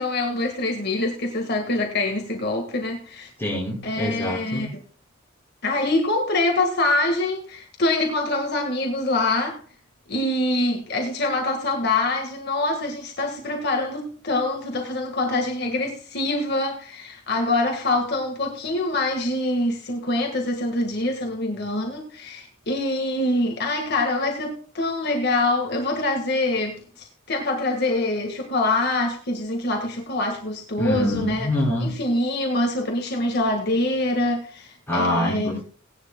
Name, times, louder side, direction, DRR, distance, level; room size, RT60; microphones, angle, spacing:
voice 1, 0.0-3.3 3.8-4.7 5.6-9.6 10.1-31.5 31.8-35.6, left 2 dB, 55° left, 2 dB, 1.7 m, -25 dB
voice 2, 3.4-4.7 30.8-31.9 34.9-35.6, left 1 dB, 10° left, -4 dB, 5.8 m, -25 dB
18.5 x 11.0 x 2.3 m, 0.39 s
head